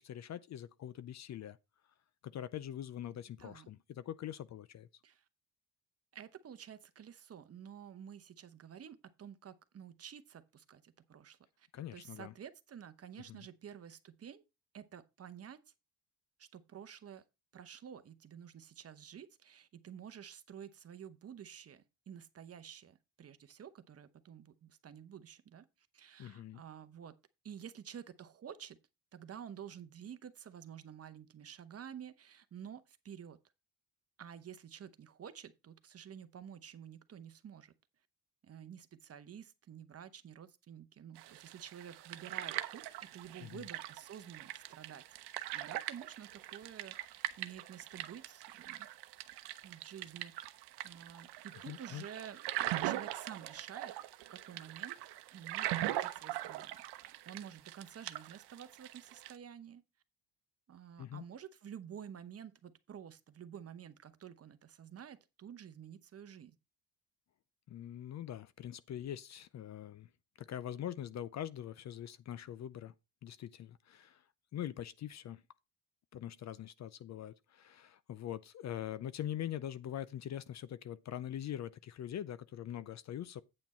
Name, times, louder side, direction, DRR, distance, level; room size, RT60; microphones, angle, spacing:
voice 1, 0.0-1.6 2.2-4.9 11.7-12.3 13.3-13.5 26.2-26.6 43.4-43.7 51.7-52.0 61.0-61.2 67.7-70.1 70.4-72.9 73.2-74.2 74.5-75.4 76.1-83.4, left 11 dB, 45° left, 0.5 m, -43 dB
voice 2, 3.4-3.7 5.0-5.2 6.1-14.4 14.7-15.6 16.4-17.2 17.5-27.1 27.4-28.8 29.1-33.4 34.2-37.7 38.4-48.9 49.6-50.5 50.8-52.4 52.8-53.9 54.3-55.0 55.3-56.8 57.0-59.8 60.7-66.6, right 8 dB, 35° right, 0.9 m, -51 dB
sound 1, 41.2-59.4, right 15 dB, 80° right, 0.8 m, -41 dB
8.9 x 5.9 x 4.2 m
cardioid pair, 105°, 39 cm